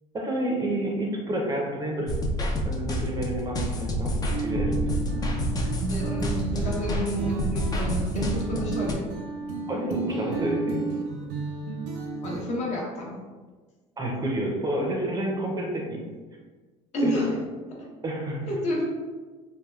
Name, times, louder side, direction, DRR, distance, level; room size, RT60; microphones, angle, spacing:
voice 1, 0.1-2.1 2.6-4.8 9.7-10.8 14.0-16.0 17.0-17.3 18.0-18.5, right 1 dB, 25° right, 0 dB, 0.6 m, -29 dB
sound 1, 2.1-8.9, equal, 25° left, 0.4 m, -28 dB
sound 2, 4.3-12.4, right 4 dB, 85° right, 0.5 m, -32 dB
voice 2, 5.9-9.1 12.2-13.2 16.9-17.3 17.7-17.9 18.5-18.8, left 1 dB, 45° left, -2 dB, 0.8 m, -30 dB
3.3 x 2.2 x 2.3 m, 1.4 s
supercardioid pair, 90°, 16 cm